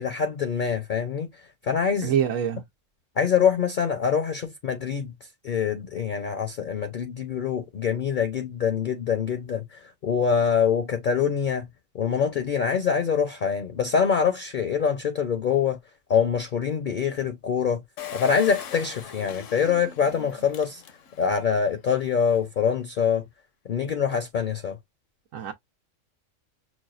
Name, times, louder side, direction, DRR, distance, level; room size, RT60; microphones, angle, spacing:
voice 1, 0.0-2.1 3.2-5.1 5.4-11.7 11.9-15.8 16.1-17.8 18.1-20.8 21.2-23.2 23.7-24.8, left 7 dB, 50° left, 0.7 m, -25 dB
voice 2, 2.0-2.6 25.3-25.5, right 9 dB, 80° right, 1.0 m, -25 dB
Engine, 18.0-21.4 21.9-22.0 22.2-22.3, left 9 dB, 75° left, 1.1 m, -40 dB
6.2 x 2.3 x 2.4 m
omnidirectional pair, 1.3 m